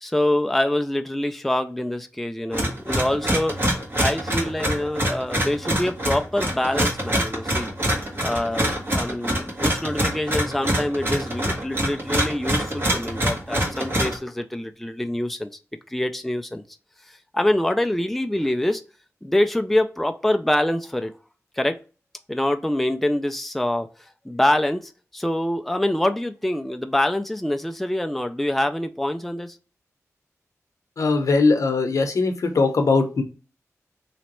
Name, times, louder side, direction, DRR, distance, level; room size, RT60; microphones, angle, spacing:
voice 1, 0.0-3.6 4.0-7.7 8.2-15.5 15.9-16.6 17.1-18.8 19.2-21.1 21.6-21.8 22.3-23.9 24.3-29.6, left 1 dB, 5° left, 0.3 m, -25 dB
sound 1, 2.5-14.2, equal, 45° right, 1.3 m, -25 dB
voice 2, 31.0-33.2, left 3 dB, 75° left, 0.7 m, -20 dB
3.2 x 3.0 x 3.0 m
cardioid pair, 65°, 6 cm